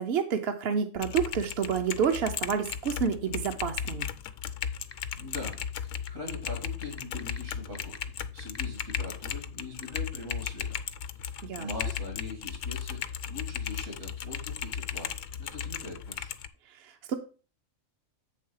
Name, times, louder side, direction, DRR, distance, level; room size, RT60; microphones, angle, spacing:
voice 1, 0.0-4.1 11.4-11.7 16.8-17.1, right 7 dB, 55° right, 6 dB, 0.8 m, -29 dB
Typing, 0.9-16.5, left 8 dB, 75° left, 1.0 m, -36 dB
sound 1, 4.9-5.0 5.4-5.8 6.1-6.2 6.8-8.6 8.9-9.0 9.8-10.0, left 5 dB, 35° left, 0.4 m, -42 dB
voice 2, 5.2-10.8 11.6-15.1 15.4-16.3, left 2 dB, 80° right, -1 dB, 3.3 m, -42 dB
8.5 x 3.5 x 5.5 m, 0.36 s
omnidirectional pair, 1.4 m